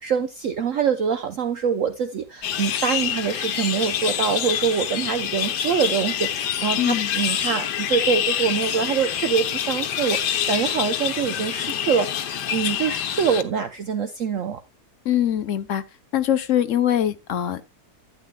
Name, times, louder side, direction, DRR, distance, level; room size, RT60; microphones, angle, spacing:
voice 1, 0.0-14.6, right 7 dB, 60° right, 0.9 m, -25 dB
sound 1, 2.4-13.4, left 9 dB, 80° left, 1.4 m, -26 dB
voice 2, 6.8-7.1 15.0-15.8 16.1-17.7, left 11 dB, 60° left, 0.9 m, -23 dB
12.0 x 9.3 x 2.2 m
omnidirectional pair, 1.8 m